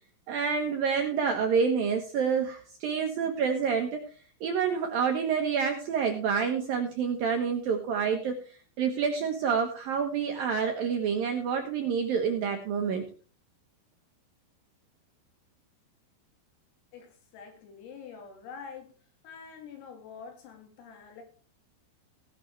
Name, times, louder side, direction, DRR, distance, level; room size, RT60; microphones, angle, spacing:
voice 1, 0.3-4.0 4.4-8.4 8.8-13.1, right 6 dB, 70° right, 4 dB, 2.2 m, -28 dB
voice 2, 16.9-18.9 19.2-21.2, left 6 dB, 85° left, 3 dB, 5.5 m, -46 dB
17.0 x 10.5 x 3.4 m, 0.39 s
omnidirectional pair, 5.8 m